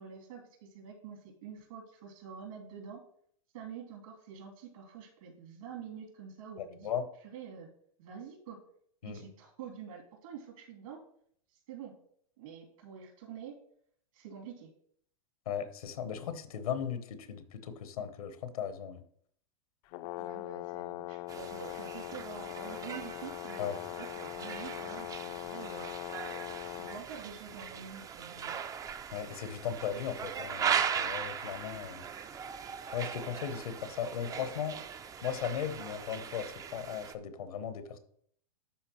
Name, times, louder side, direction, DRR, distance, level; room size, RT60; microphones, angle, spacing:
voice 1, 0.0-3.0 3.5-6.9 7.2-7.7 8.0-8.6 9.0-11.0 11.7-11.9 12.4-13.6 14.1-14.7 20.2-25.9 26.9-28.6, right 7 dB, 70° right, 1 dB, 2.9 m, -47 dB
voice 2, 6.6-7.1 9.0-9.2 15.5-19.0 23.6-23.8 29.1-32.0 32.9-34.8 35.2-38.0, left 8 dB, 80° left, 10 dB, 1.0 m, -37 dB
Brass instrument, 19.9-27.0, left 19 dB, 50° left, 0.4 m, -41 dB
sound 1, 21.3-37.1, right 7 dB, 20° right, 0.4 m, -39 dB
11.5 x 4.0 x 3.0 m, 0.64 s
hypercardioid pair, 120°, 18 cm